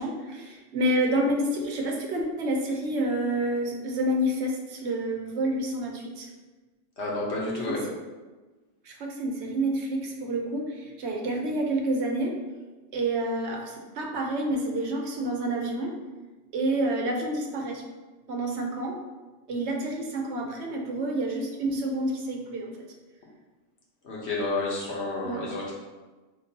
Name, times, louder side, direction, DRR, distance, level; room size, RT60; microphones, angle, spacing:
voice 1, 0.0-6.3 7.7-8.0 8.8-12.4 12.9-16.0 16.5-17.8 18.3-19.0 19.5-22.7 25.2-25.5, right 1 dB, 70° right, 1 dB, 0.9 m, -28 dB
voice 2, 7.0-7.8 24.0-25.7, left 2 dB, 65° left, -4 dB, 1.3 m, -30 dB
4.4 x 3.8 x 2.8 m, 1.2 s
omnidirectional pair, 1.2 m